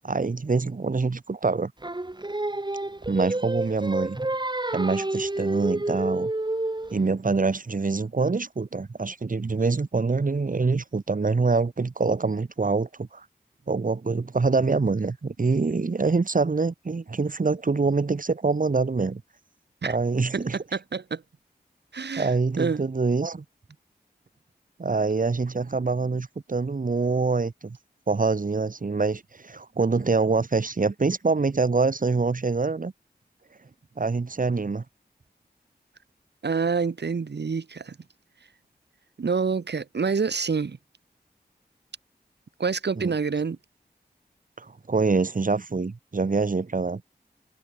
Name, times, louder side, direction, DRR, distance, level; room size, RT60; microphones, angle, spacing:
voice 1, 0.0-1.7 3.1-4.2 4.7-6.3 6.9-13.2 13.7-19.2 19.8-20.6 22.2-23.4 24.8-27.8 28.1-32.9 34.0-34.8 43.0-43.1 44.6-47.0, right 4 dB, 50° right, 1.3 m, -25 dB
Singing, 1.8-7.0, right 2 dB, 25° right, 2.1 m, -29 dB
voice 2, 20.7-21.2 21.9-22.3 22.6-22.8 36.4-38.0 39.2-40.8 42.6-43.6, right 5 dB, 85° right, 1.6 m, -27 dB
wide cardioid pair, 60°, 17 cm